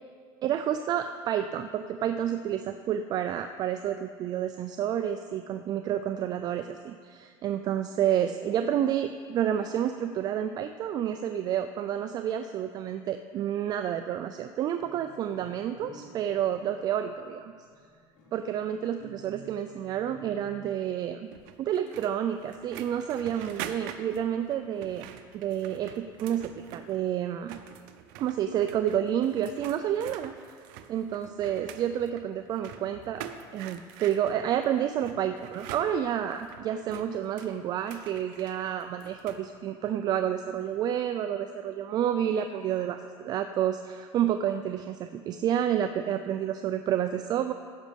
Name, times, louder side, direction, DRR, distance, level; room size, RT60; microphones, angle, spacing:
voice 1, 0.4-17.5 18.3-21.2 21.6-25.1 25.3-27.6 28.2-30.3 30.9-33.2 33.5-47.5, right 10 dB, 40° right, 8 dB, 0.4 m, -29 dB
sound 1, 14.8-20.4, right 1 dB, 80° left, 3.3 m, -53 dB
sound 2, 21.3-27.1 27.4-39.5, right 10 dB, 85° right, 0.7 m, -45 dB
15.5 x 6.3 x 5.3 m, 2.1 s
cardioid pair, 145°, 10 cm